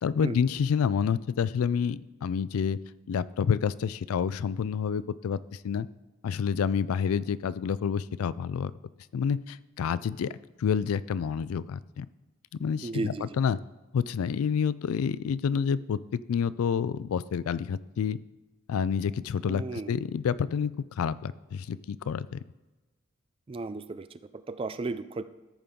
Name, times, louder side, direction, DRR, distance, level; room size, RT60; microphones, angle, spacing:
voice 1, 0.0-2.8 3.1-5.9 6.2-8.7 9.1-10.3 10.6-12.1 12.6-13.6 13.9-18.2 18.7-20.7 21.0-22.4, left 7 dB, 90° left, 18 dB, 0.3 m, -28 dB
voice 2, 12.8-13.4 19.5-20.0 23.5-24.1 24.3-25.2, right 3 dB, 25° right, 12 dB, 0.3 m, -34 dB
13.5 x 5.2 x 3.7 m, 1.2 s
head